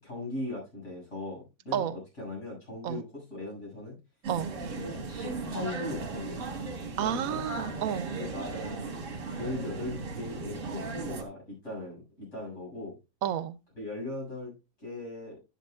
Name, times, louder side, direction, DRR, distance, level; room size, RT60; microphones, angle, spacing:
voice 1, 0.0-4.0 4.8-6.4 7.0-7.4 8.2-8.8 9.3-13.0 13.8-14.5 14.8-15.4, left 2 dB, 60° left, 7.6 m, -39 dB
sound 1, 4.2-11.2, right 3 dB, 65° right, 1.8 m, -37 dB
voice 2, 7.0-8.1 13.2-13.6, right 9 dB, 85° right, 1.1 m, -30 dB
10.5 x 10.0 x 2.4 m
omnidirectional pair, 1.4 m